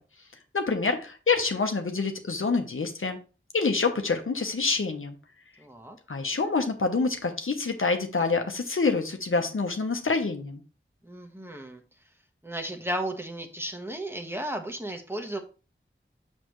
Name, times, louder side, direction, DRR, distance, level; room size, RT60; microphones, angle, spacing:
voice 1, 0.5-3.2 3.5-5.2 6.1-10.6, left 4 dB, 80° left, 1.0 m, -26 dB
voice 2, 5.6-6.0 11.0-11.8 12.4-15.4, right 1 dB, 10° right, 1.3 m, -34 dB
6.6 x 6.4 x 3.1 m
wide cardioid pair, 60°, 21 cm